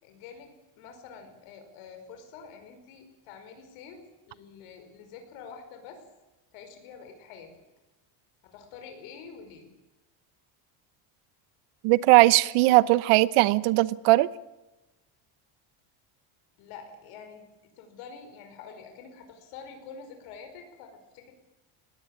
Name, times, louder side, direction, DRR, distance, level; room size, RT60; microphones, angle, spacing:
voice 1, 0.0-6.0 6.5-7.5 8.4-9.7 16.6-17.5 17.8-21.3, left 6 dB, 85° left, 5 dB, 5.3 m, -47 dB
voice 2, 11.8-14.3, right 19 dB, 85° right, 18 dB, 1.0 m, -19 dB
19.5 x 17.5 x 8.9 m, 1.1 s
cardioid pair, 170°, 49 cm